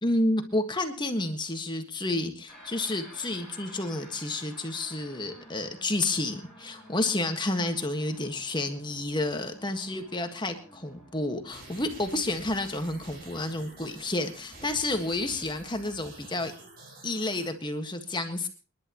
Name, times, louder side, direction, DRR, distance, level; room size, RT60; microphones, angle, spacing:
voice 1, 0.0-16.5 17.0-18.5, left 2 dB, 20° left, 7 dB, 1.6 m, -30 dB
sound 1, 2.5-16.5, equal, ahead, 5.4 m, -53 dB
sound 2, 11.5-17.5, right 2 dB, 45° right, 5.7 m, -48 dB
29.0 x 11.0 x 3.0 m, 0.32 s
head